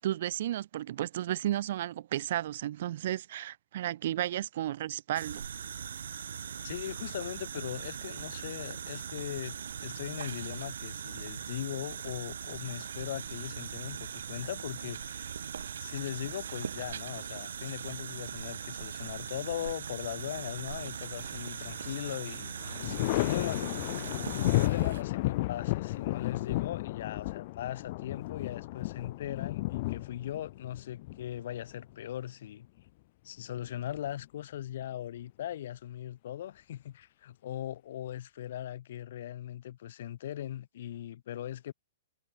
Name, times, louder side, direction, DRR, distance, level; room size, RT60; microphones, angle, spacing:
voice 1, 0.0-5.4, right 12 dB, 55° right, 3.0 m, -33 dB
sound 1, 5.1-25.0, right 8 dB, 80° right, 7.2 m, -40 dB
voice 2, 6.6-15.3 15.8-32.7 33.2-41.7, left 12 dB, 60° left, 5.2 m, -39 dB
Thunder, 21.2-22.0 22.3-31.9 33.4-34.2, left 20 dB, 45° left, 2.0 m, -33 dB
hypercardioid pair, 150°, 0 cm